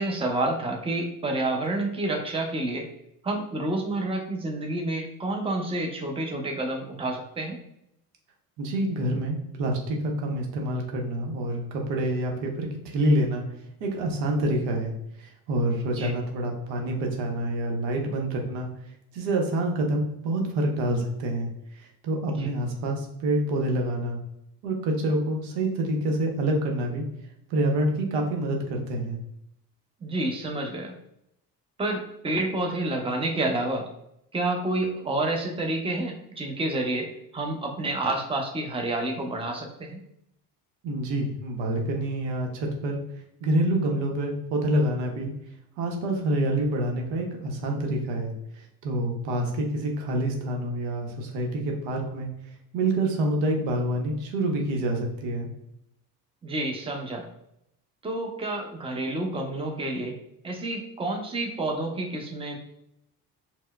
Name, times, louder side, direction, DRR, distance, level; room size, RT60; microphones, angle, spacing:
voice 1, 0.0-2.9 3.2-7.6 16.0-16.1 22.4-22.5 30.0-30.9 31.8-33.9 34.3-40.0 56.4-57.3 58.0-60.1 60.4-62.6, right 2 dB, 10° right, 2 dB, 0.6 m, -29 dB
voice 2, 8.6-13.4 13.8-14.9 15.2-18.7 19.1-21.5 22.0-24.2 24.6-27.0 27.5-29.2 40.8-43.0 43.4-45.3 45.8-48.3 48.8-52.3 52.7-55.5, right 1 dB, 80° right, 2 dB, 0.8 m, -27 dB
4.3 x 2.1 x 2.2 m, 0.77 s
supercardioid pair, 65°, 45 cm